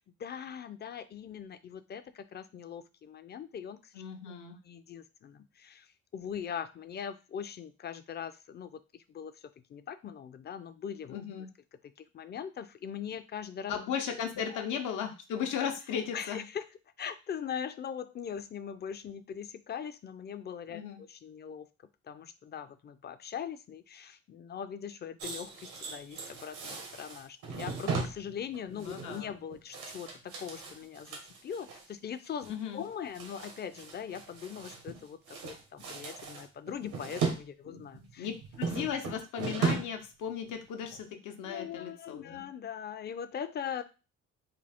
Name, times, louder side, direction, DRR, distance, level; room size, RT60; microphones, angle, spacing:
voice 1, 0.2-4.0 4.6-11.2 12.0-13.8 14.3-14.6 16.1-16.7 17.0-21.7 22.0-38.3 41.4-43.8, left 8 dB, 35° left, 12 dB, 0.4 m, -41 dB
voice 2, 3.9-4.6 11.1-11.5 13.7-16.4 20.7-21.0 28.7-29.3 32.4-32.8 37.6-42.5, left 8 dB, 85° left, 5 dB, 0.8 m, -36 dB
sound 1, 25.2-31.9 32.2-32.5 32.8-35.0 35.3-37.4 37.8-40.0 40.3-40.5 40.9-41.0, right 4 dB, 90° right, 1.1 m, -37 dB
3.8 x 2.4 x 3.4 m, 0.31 s
cardioid pair, 90°, 30 cm